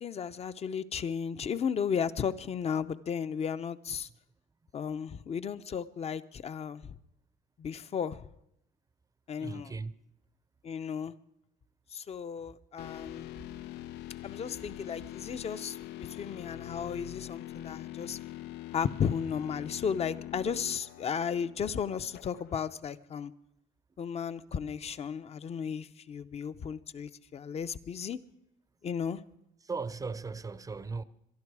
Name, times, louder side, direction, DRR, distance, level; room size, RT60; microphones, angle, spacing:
voice 1, 0.0-4.1 4.7-6.9 7.6-8.2 9.3-9.7 10.6-11.1 11.9-13.3 14.2-15.8 16.1-18.2 18.7-23.3 24.0-28.2 28.8-29.2, left 7 dB, 40° left, 0.7 m, -34 dB
voice 2, 9.4-9.9 29.7-31.0, right 4 dB, 20° right, 0.6 m, -37 dB
sound 1, 12.8-22.7, left 15 dB, 80° left, 0.5 m, -44 dB
23.5 x 11.0 x 4.8 m
cardioid pair, 110°, 17 cm